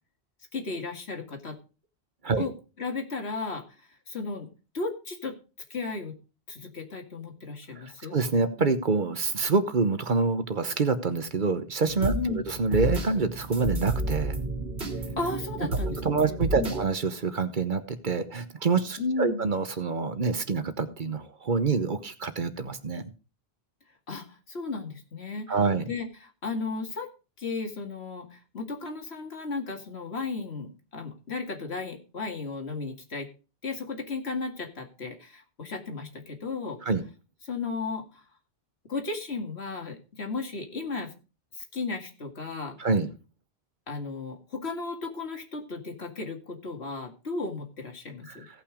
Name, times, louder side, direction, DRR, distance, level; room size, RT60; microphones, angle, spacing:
voice 1, 0.5-1.6 2.4-2.5 2.8-4.5 4.7-5.4 5.7-6.1 6.5-8.2 12.1-12.5 15.2-16.7 19.0-19.4 24.1-25.6 25.9-27.1 27.4-33.3 33.6-36.8 37.5-38.2 38.9-41.1 41.6-42.8 43.9-48.5, left 3 dB, 70° left, 4 dB, 2.3 m, -34 dB
voice 2, 7.8-14.4 15.9-23.0 25.5-25.9 36.8-37.0 42.8-43.1 48.3-48.4, right 4 dB, 50° right, 11 dB, 1.1 m, -26 dB
sound 1, 11.8-16.9, right 2 dB, 75° right, 2.3 m, -31 dB
16.5 x 5.8 x 5.0 m, 0.34 s
omnidirectional pair, 1.1 m